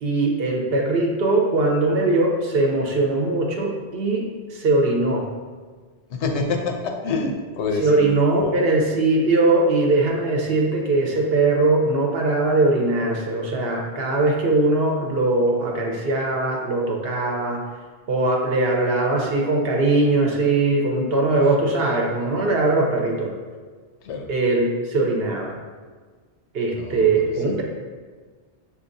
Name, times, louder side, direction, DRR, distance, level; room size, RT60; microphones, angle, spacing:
voice 1, 0.0-5.3 7.8-17.6 18.1-23.3 24.3-25.6 26.5-27.6, right 2 dB, 65° right, 0 dB, 0.8 m, -21 dB
voice 2, 6.1-8.5 24.0-24.3 26.7-27.6, left 3 dB, 75° left, 3 dB, 0.9 m, -27 dB
6.3 x 2.8 x 2.6 m, 1.5 s
omnidirectional pair, 1.2 m